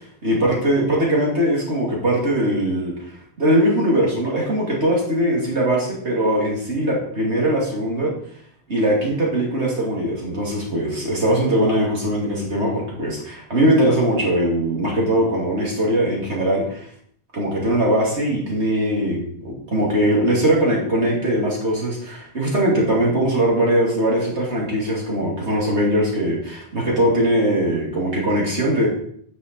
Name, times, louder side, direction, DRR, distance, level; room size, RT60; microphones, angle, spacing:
voice 1, 0.2-2.9 3.4-8.1 8.7-16.8 17.3-28.9, right 1 dB, 80° right, -3 dB, 2.9 m, -20 dB
9.4 x 5.6 x 4.4 m, 0.63 s
omnidirectional pair, 1.1 m